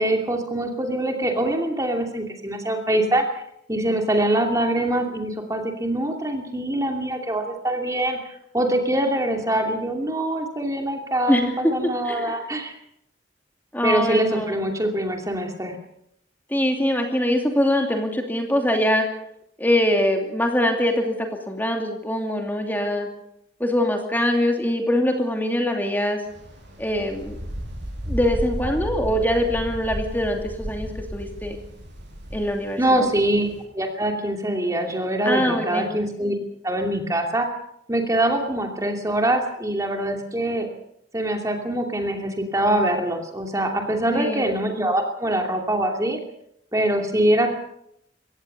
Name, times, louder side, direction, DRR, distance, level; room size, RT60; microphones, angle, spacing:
voice 1, 0.0-3.3 3.7-12.7 13.8-15.7 32.8-33.5 33.7-36.3 36.6-37.5 37.9-40.7 41.1-46.2 46.7-47.5, right 1 dB, 15° right, 3 dB, 2.7 m, -24 dB
voice 2, 11.3-11.7 12.0-12.4 13.7-14.6 16.5-19.1 19.6-21.2 21.5-23.1 23.6-26.2 26.8-27.4 28.1-31.6 32.3-33.1 35.2-35.9 44.1-44.6, left 1 dB, 10° left, 3 dB, 2.7 m, -23 dB
sound 1, 26.3-33.6, equal, 75° right, 7.6 m, -33 dB
24.0 x 17.5 x 6.8 m, 0.75 s
head